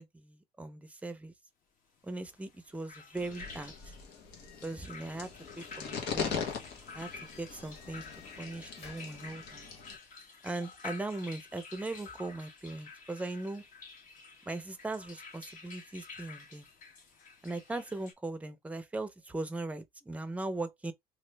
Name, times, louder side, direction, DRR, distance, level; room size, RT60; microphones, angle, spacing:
voice 1, 0.0-1.3 2.0-3.9 4.6-5.3 5.6-6.4 6.9-7.1 7.4-8.1 8.4-9.6 10.4-13.6 14.5-16.7 17.4-20.9, right 2 dB, 10° right, 0.5 m, -39 dB
sound 1, 2.2-18.1, left 4 dB, 55° left, 1.2 m, -50 dB
sound 2, 3.1-10.0, left 6 dB, 85° left, 1.1 m, -41 dB
sound 3, 4.3-9.2, left 4 dB, 35° left, 1.6 m, -58 dB
3.1 x 2.5 x 3.3 m
cardioid pair, 110°, 17 cm